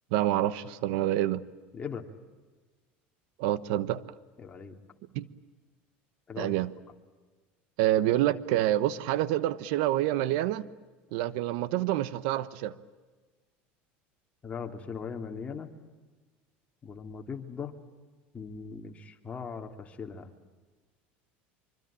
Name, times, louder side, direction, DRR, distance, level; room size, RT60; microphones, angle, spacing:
voice 1, 0.1-1.4 3.4-4.0 5.1-5.3 6.4-6.7 7.8-10.7 11.1-12.7, right 13 dB, 75° right, 1.0 m, -27 dB
voice 2, 1.7-2.0 4.4-4.7 6.3-6.5 14.4-15.7 16.8-17.7 18.3-20.3, left 6 dB, 25° left, 2.9 m, -39 dB
25.0 x 24.5 x 8.8 m
supercardioid pair, 110°, 5 cm